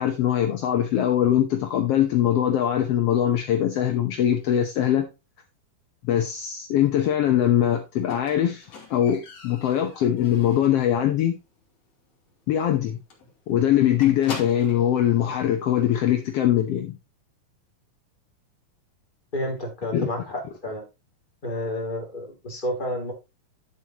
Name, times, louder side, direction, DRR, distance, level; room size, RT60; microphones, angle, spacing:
voice 1, 0.0-5.1 6.0-8.6 8.9-11.3 12.5-13.0 13.5-16.9 19.9-20.1, left 11 dB, 75° left, 1.4 m, -22 dB
Squeak, 8.1-10.9 11.2-11.6 11.9-12.0 12.4-12.5 12.7-12.9 13.1-14.9 15.8-15.9, left 5 dB, 50° left, 3.4 m, -41 dB
voice 2, 19.3-20.9 21.4-23.1, left 1 dB, 15° left, 2.7 m, -30 dB
10.0 x 7.5 x 3.0 m
omnidirectional pair, 4.1 m